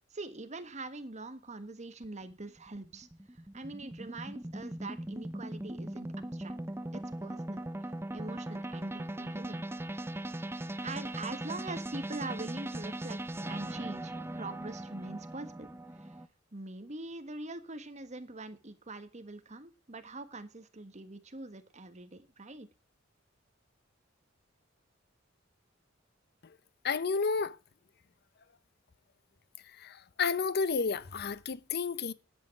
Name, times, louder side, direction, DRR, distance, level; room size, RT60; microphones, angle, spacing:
voice 1, 0.1-3.1 3.5-6.5 6.9-9.6 10.5-13.2 13.5-15.7 16.0-16.2 16.5-22.7, right 2 dB, 35° right, 1.5 m, -43 dB
sound 1, 2.0-16.3, right 1 dB, 10° right, 0.6 m, -39 dB
voice 2, 26.8-27.6 29.8-32.1, left 5 dB, 55° left, 0.6 m, -31 dB
11.0 x 8.6 x 5.9 m
head